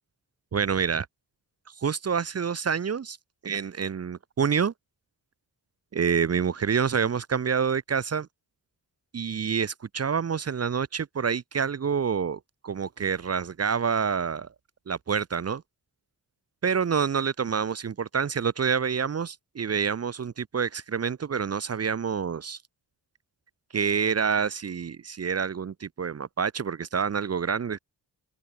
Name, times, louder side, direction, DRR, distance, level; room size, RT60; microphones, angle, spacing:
voice 1, 0.5-1.1 1.8-3.2 3.4-4.7 5.9-8.3 9.1-14.5 14.9-15.6 16.6-22.6 23.7-27.8, right 6 dB, 40° right, 0.6 m, -27 dB
open air
wide cardioid pair, 95°, 41 cm